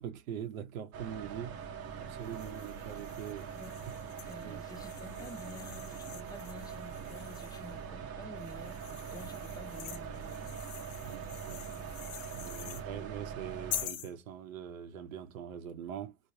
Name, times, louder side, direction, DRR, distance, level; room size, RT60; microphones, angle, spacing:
voice 1, 0.0-1.7 2.0-3.5 4.4-4.6 11.0-11.7 12.3-16.2, right 9 dB, 80° right, 0.7 m, -43 dB
sound 1, 0.9-13.9, right 7 dB, 35° right, 0.7 m, -43 dB
sound 2, 2.2-7.8 8.4-12.9 13.7-14.1, left 12 dB, 65° left, 0.5 m, -46 dB
voice 2, 3.5-3.9 4.2-10.6 12.6-12.8, left 2 dB, 10° left, 0.5 m, -50 dB
2.9 x 2.1 x 2.5 m
hypercardioid pair, 80°, 40 cm